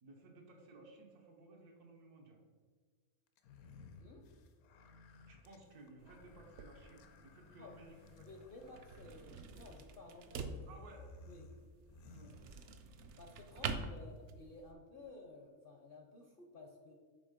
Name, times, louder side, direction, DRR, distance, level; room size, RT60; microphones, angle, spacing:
voice 1, 0.0-2.4 5.3-8.3 10.7-11.1 12.1-12.4 13.4-13.5, right 2 dB, 85° right, 1 dB, 1.6 m, -58 dB
sound 1, 3.4-13.1, left 3 dB, 75° left, 1.1 m, -59 dB
sound 2, 6.0-14.7, right 4 dB, 65° right, 0.7 m, -47 dB
voice 2, 8.2-10.7 11.2-11.5 13.2-16.9, left 2 dB, 55° left, 2 dB, 0.6 m, -55 dB
6.1 x 4.1 x 5.0 m, 1.6 s
omnidirectional pair, 1.6 m